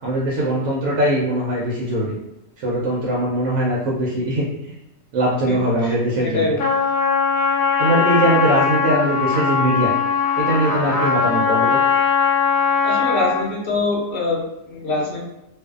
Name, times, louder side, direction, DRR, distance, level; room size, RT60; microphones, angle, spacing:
voice 1, 0.0-2.2 2.6-4.4 5.1-6.5 7.8-9.9 10.4-11.8, right 1 dB, 80° right, -5 dB, 1.0 m, -21 dB
voice 2, 5.5-5.9 6.2-6.6 12.8-15.2, left 3 dB, 50° left, -3 dB, 0.8 m, -24 dB
Trumpet, 6.6-13.5, left 6 dB, 75° left, 1.0 m, -20 dB
2.5 x 2.3 x 2.3 m, 0.89 s
omnidirectional pair, 1.4 m